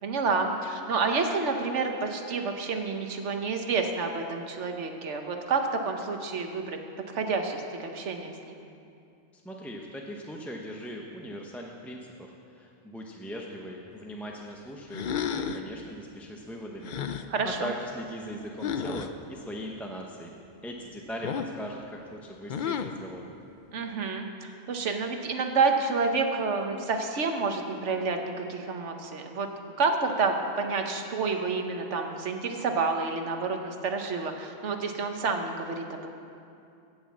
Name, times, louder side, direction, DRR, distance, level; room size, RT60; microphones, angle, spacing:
voice 1, 0.0-6.8 7.1-8.5 17.3-17.7 23.7-24.3 24.7-29.5 29.8-36.1, right 4 dB, 85° right, 4 dB, 1.4 m, -29 dB
voice 2, 9.3-20.3 20.6-23.3, equal, ahead, 0 dB, 0.7 m, -40 dB
sound 1, 14.9-15.7 16.8-17.3 18.6-19.1 21.2-21.6 22.5-23.0, left 7 dB, 55° left, 0.6 m, -32 dB
17.0 x 6.3 x 7.3 m, 2.5 s
omnidirectional pair, 1.2 m